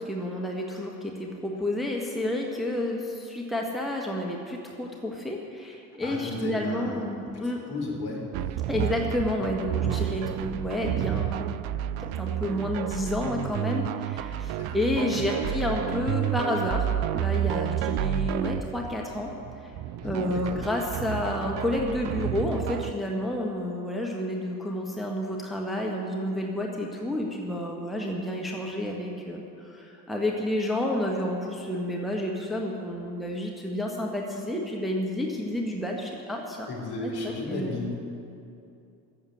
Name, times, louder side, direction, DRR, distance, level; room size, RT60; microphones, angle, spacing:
voice 1, 0.1-0.9 1.2-3.0 3.3-4.4 4.8-5.4 6.0-7.6 8.7-11.5 12.2-13.8 14.7-16.8 17.1-19.3 20.0-29.4 30.1-31.4 31.7-36.0 36.3-36.4 37.0-37.1 37.5-37.8, left 1 dB, ahead, -1 dB, 1.5 m, -29 dB
voice 2, 6.0-8.3 14.6-14.8 15.3-15.5 20.0-20.6 36.7-37.9, left 2 dB, 50° left, -2 dB, 3.9 m, -34 dB
sound 1, 8.3-22.9, right 11 dB, 50° right, 0.6 m, -30 dB
14.5 x 7.4 x 8.6 m, 2.7 s
figure-of-eight pair, 60°, 48 cm